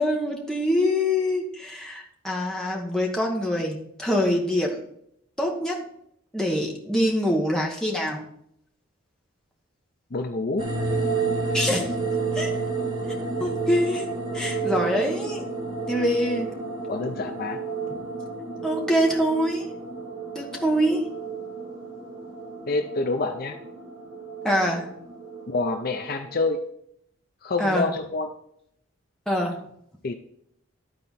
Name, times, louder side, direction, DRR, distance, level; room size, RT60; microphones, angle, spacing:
voice 1, 0.0-4.8 5.4-5.9 6.3-8.2 11.5-11.9 12.3-12.5 13.4-14.1 14.3-15.4 15.9-16.5 18.6-19.7 20.3-21.1 24.4-24.9 27.6-27.9 29.3-29.6, equal, 5° left, -1 dB, 1.2 m, -24 dB
voice 2, 10.1-10.6 14.7-14.8 16.9-17.6 22.7-23.6 25.5-26.6 27.4-28.3 30.0-30.1, left 3 dB, 45° left, 6 dB, 0.5 m, -27 dB
sound 1, 10.6-26.5, right 4 dB, 25° right, 1.3 m, -31 dB
12.0 x 4.4 x 4.1 m, 0.72 s
head